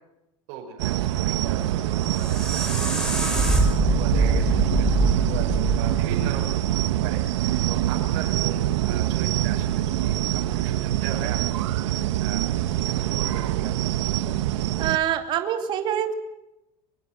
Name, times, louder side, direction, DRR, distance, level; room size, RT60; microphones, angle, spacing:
voice 1, 0.5-3.3 3.8-7.2 7.7-14.3, right 8 dB, 55° right, -2 dB, 5.5 m, -39 dB
sound 1, 0.8-15.0, right 13 dB, 90° right, 1.5 m, -25 dB
sound 2, 1.8-6.9, right 1 dB, 5° left, 5.8 m, -24 dB
voice 2, 14.8-16.1, right 10 dB, 30° right, 6 dB, 2.6 m, -25 dB
24.5 x 24.0 x 7.7 m, 0.89 s
supercardioid pair, 170°, 15 cm